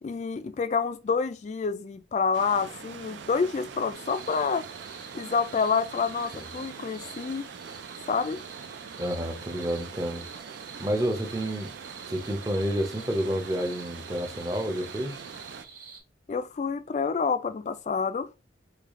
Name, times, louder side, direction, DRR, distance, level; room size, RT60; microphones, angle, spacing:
voice 1, 0.0-4.6 5.1-7.5 8.1-8.4 16.3-18.3, left 5 dB, 40° left, 0.3 m, -28 dB
sound 1, 2.3-15.6, right 6 dB, 75° right, 0.4 m, -43 dB
sound 2, 3.9-16.0, right 5 dB, 50° right, 1.3 m, -48 dB
voice 2, 9.0-10.2 10.8-11.7 12.1-15.2, equal, 20° right, 0.6 m, -29 dB
3.3 x 2.3 x 3.6 m
head